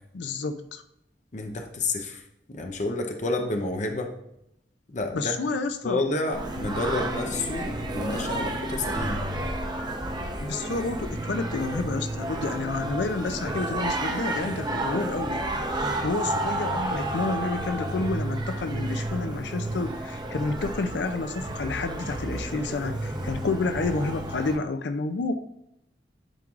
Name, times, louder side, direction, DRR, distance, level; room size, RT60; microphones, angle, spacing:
voice 1, 0.1-0.8 5.1-6.0 10.4-15.4 15.8-25.3, left 3 dB, 70° left, 9 dB, 0.5 m, -30 dB
voice 2, 1.3-2.2 2.5-4.1 4.9-5.4 5.8-9.2, left 2 dB, 45° left, 4 dB, 0.7 m, -29 dB
Singing, 6.3-24.6, right 1 dB, 25° right, 0.7 m, -31 dB
10.5 x 4.6 x 2.4 m, 0.79 s
head